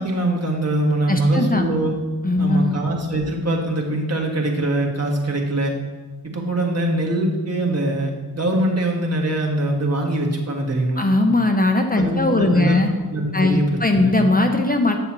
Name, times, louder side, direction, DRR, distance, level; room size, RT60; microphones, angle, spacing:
voice 1, 0.0-1.9 2.4-5.7 6.2-11.1 12.0-12.8 13.1-14.2, right 1 dB, 35° right, 0 dB, 1.8 m, -23 dB
voice 2, 1.1-1.7 2.2-2.8 11.0-12.9 13.3-15.0, left 2 dB, 20° left, 4 dB, 0.7 m, -19 dB
7.6 x 6.6 x 3.0 m, 1.2 s
supercardioid pair, 45°, 44 cm